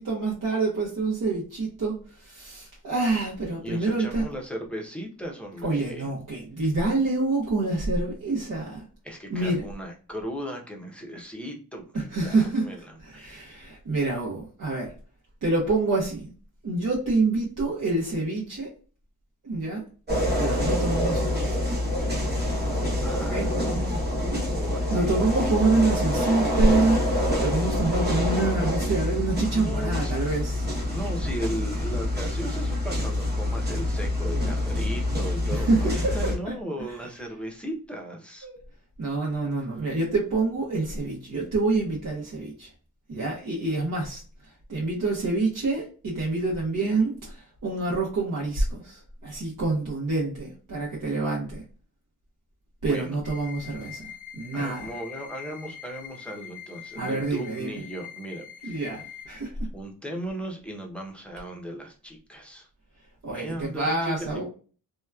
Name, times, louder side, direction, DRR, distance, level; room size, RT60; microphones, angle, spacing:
voice 1, 0.0-4.2 5.6-8.8 9.3-9.6 11.9-12.7 13.0-14.9 15.4-16.3 16.6-18.7 19.4-19.8 20.4-21.6 23.1-23.5 24.3-24.4 24.9-30.7 35.5-36.5 36.9-37.0 38.4-38.6 39.0-42.7 43.1-51.6 52.8-54.9 56.9-57.8 58.6-59.7 63.2-64.4, right 3 dB, 55° right, -4 dB, 0.9 m, -27 dB
voice 2, 3.6-6.1 9.0-13.4 23.0-25.8 29.5-30.2 30.6-38.5 52.8-53.2 54.5-58.7 59.7-62.7 63.3-64.4, equal, 5° left, 0 dB, 0.7 m, -37 dB
sound 1, 20.1-36.4, left 1 dB, 25° right, 1.0 m, -26 dB
sound 2, 53.2-59.2, left 9 dB, 80° left, 0.8 m, -43 dB
2.8 x 2.2 x 2.3 m, 0.38 s
wide cardioid pair, 90°, 37 cm